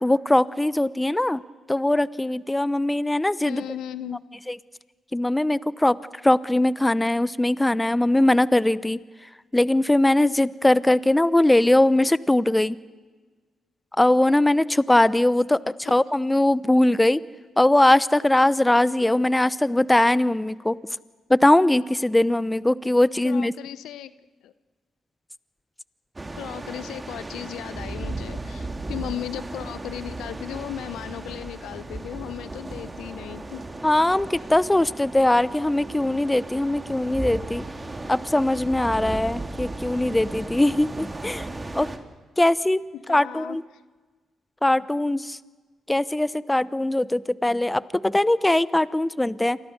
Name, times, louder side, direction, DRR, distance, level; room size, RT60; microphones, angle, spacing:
voice 1, 0.0-1.4 1.7-3.6 4.5-4.6 5.1-6.0 6.2-9.0 9.5-12.8 14.0-17.2 17.6-20.8 21.3-23.5 33.8-37.7 38.1-41.9 42.4-42.8 43.1-43.6 44.6-45.4 45.9-49.6, left 1 dB, 15° left, 18 dB, 0.9 m, -21 dB
voice 2, 3.5-4.2 15.9-16.0 23.2-24.1 24.4-24.5 26.3-33.6 42.9-43.6, left 11 dB, 75° left, 15 dB, 0.8 m, -36 dB
sound 1, 26.2-42.0, right 2 dB, 25° right, 3.1 m, -36 dB
29.5 x 24.5 x 6.7 m, 1.4 s
hypercardioid pair, 45°, 0 cm